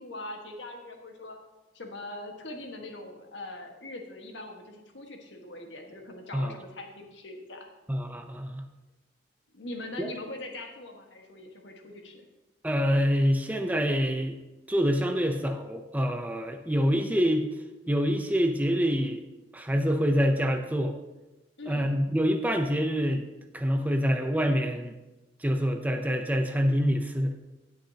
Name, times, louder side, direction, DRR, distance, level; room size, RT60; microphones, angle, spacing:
voice 1, 0.0-1.4 1.7-7.7 9.5-12.2 21.6-22.0, left 2 dB, 80° left, 2 dB, 1.5 m, -42 dB
voice 2, 7.9-8.6 10.0-10.1 12.6-14.4 14.7-17.4 17.9-19.2 19.5-20.9 21.7-23.2 23.5-24.9 25.4-27.4, equal, 10° right, 5 dB, 0.6 m, -26 dB
18.0 x 6.4 x 2.8 m, 1.0 s
head